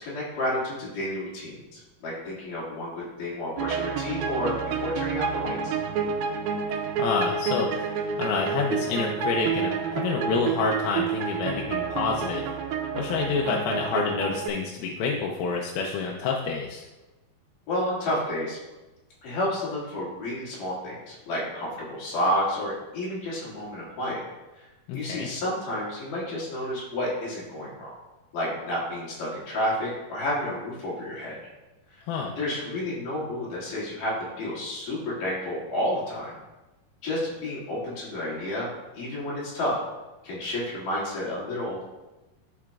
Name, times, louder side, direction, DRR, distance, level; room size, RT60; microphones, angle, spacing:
voice 1, 0.0-5.7 17.7-18.6 19.2-24.2 24.6-24.7 24.9-27.9 28.3-31.4 31.9-32.0 32.4-36.3 37.0-38.7 38.9-39.8 40.2-41.8, left 1 dB, 65° left, -7 dB, 3.7 m, -30 dB
sound 1, 3.6-14.5, right 6 dB, 80° right, 2.4 m, -29 dB
voice 2, 7.0-12.4 12.9-16.9 24.9-25.3 32.1-32.3, left 4 dB, 85° left, -1 dB, 2.6 m, -28 dB
12.0 x 4.9 x 2.4 m, 1.1 s
omnidirectional pair, 4.3 m